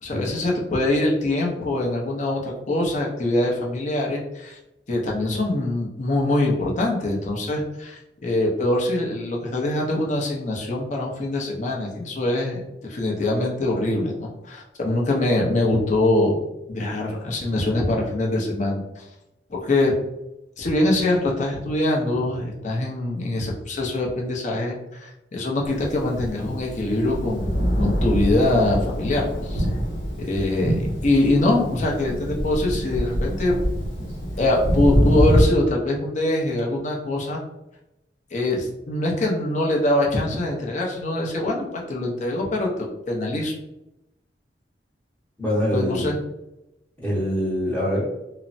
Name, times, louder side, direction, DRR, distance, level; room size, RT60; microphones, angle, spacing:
voice 1, 0.0-4.6 4.9-16.4 16.7-19.1 19.5-19.9 20.6-29.7 30.2-33.5 34.4-37.4 38.3-43.5 45.7-46.2, left 1 dB, 45° left, -1 dB, 0.6 m, -23 dB
Thunder, 25.9-35.4, equal, 90° left, 0.7 m, -24 dB
voice 2, 45.4-46.1 47.0-48.0, equal, 10° left, -10 dB, 0.8 m, -24 dB
3.1 x 2.0 x 2.6 m, 0.91 s
head